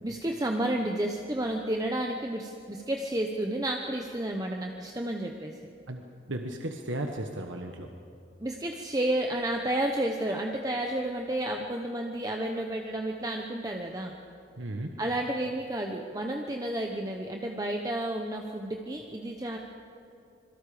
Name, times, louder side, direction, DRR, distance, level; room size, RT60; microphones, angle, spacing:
voice 1, 0.0-5.6 8.4-14.1 15.0-19.6, right 1 dB, 20° right, 2 dB, 1.0 m, -31 dB
voice 2, 6.3-7.9 14.6-14.9, right 1 dB, 85° right, 3 dB, 1.4 m, -35 dB
26.5 x 23.0 x 5.1 m, 2.7 s
head